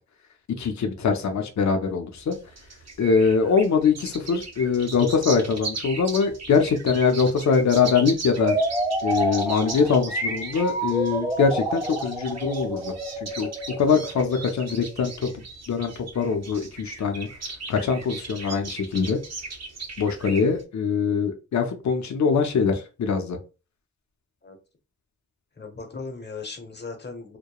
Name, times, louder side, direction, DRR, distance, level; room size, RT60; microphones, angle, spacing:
voice 1, 0.6-2.3 3.0-8.5 9.0-12.9 13.2-13.5 13.8-15.3 15.7-17.3 17.7-19.2 20.0-23.4, left 5 dB, 65° left, 5 dB, 0.5 m, -23 dB
sound 1, 2.1-20.6, right 4 dB, 60° right, 0.7 m, -38 dB
sound 2, 8.3-15.0, right 1 dB, 10° right, 0.4 m, -29 dB
voice 2, 25.6-27.4, left 4 dB, 35° left, 4 dB, 0.8 m, -38 dB
2.8 x 2.2 x 2.3 m, 0.32 s
wide cardioid pair, 70°, 30 cm